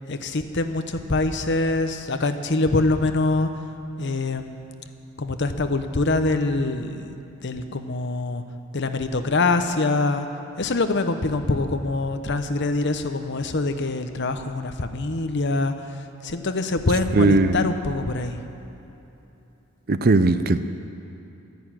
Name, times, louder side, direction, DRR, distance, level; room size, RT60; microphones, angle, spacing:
voice 1, 0.1-3.5 4.0-4.7 5.2-7.1 7.4-8.4 8.7-10.3 10.6-15.7 16.2-18.4, left 2 dB, 55° left, 8 dB, 0.9 m, -24 dB
voice 2, 17.1-17.6 19.9-20.6, right 2 dB, 45° right, 11 dB, 0.5 m, -18 dB
13.0 x 11.0 x 9.0 m, 2.9 s
head